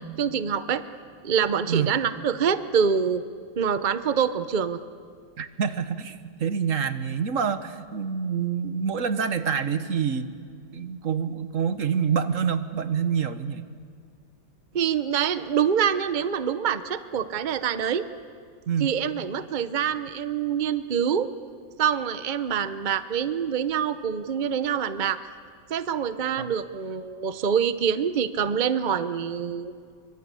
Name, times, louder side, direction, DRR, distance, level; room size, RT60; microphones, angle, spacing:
voice 1, 0.2-0.8 1.2-3.2 3.6-4.8 14.7-18.1 18.8-21.3 21.8-25.2 25.7-29.7, right 7 dB, 70° right, 12 dB, 0.4 m, -25 dB
voice 2, 5.4-10.3 10.7-13.6 18.7-18.9 26.4-26.5, right 7 dB, 45° right, 10 dB, 1.3 m, -27 dB
27.0 x 24.5 x 8.4 m, 2.1 s
omnidirectional pair, 2.1 m